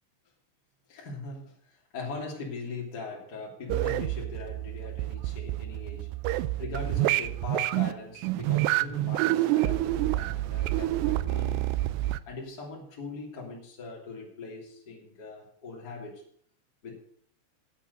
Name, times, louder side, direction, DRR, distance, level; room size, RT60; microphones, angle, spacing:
voice 1, 0.9-6.1 6.6-11.6 12.3-16.2 16.8-16.9, left 3 dB, 25° left, -2 dB, 2.8 m, -40 dB
sound 1, 3.7-12.2, right 16 dB, 85° right, 2.7 m, -28 dB
8.7 x 8.4 x 8.0 m, 0.62 s
omnidirectional pair, 4.9 m